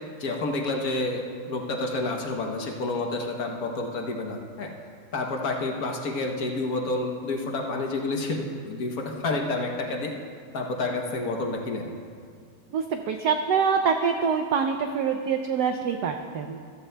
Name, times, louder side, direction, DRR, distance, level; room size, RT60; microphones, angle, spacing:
voice 1, 0.2-4.7 5.1-10.1 10.5-12.0, left 2 dB, 55° left, 2 dB, 1.1 m, -29 dB
voice 2, 12.7-16.6, right 6 dB, 90° right, 6 dB, 0.9 m, -25 dB
15.0 x 13.5 x 2.2 m, 2.2 s
omnidirectional pair, 2.3 m